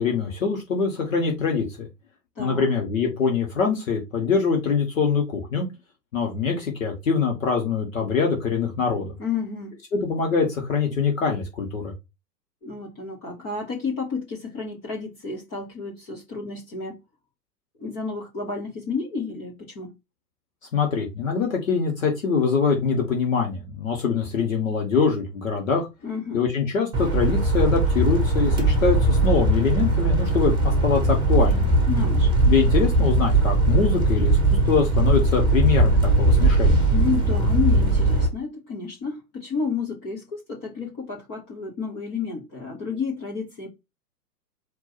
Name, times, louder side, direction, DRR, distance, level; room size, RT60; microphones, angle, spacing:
voice 1, 0.0-1.9 2.4-5.7 6.1-9.1 9.9-11.9 20.7-25.9 26.3-31.7 32.4-36.8, left 5 dB, 50° left, 1.5 m, -24 dB
voice 2, 2.4-2.7 9.2-9.8 12.6-17.0 17.8-19.9 26.0-26.4 31.9-32.3 36.9-43.7, left 5 dB, 15° left, 0.5 m, -31 dB
sound 1, 26.9-38.3, right 2 dB, 10° right, 1.1 m, -20 dB
4.5 x 2.7 x 4.2 m
figure-of-eight pair, 110°, 49 cm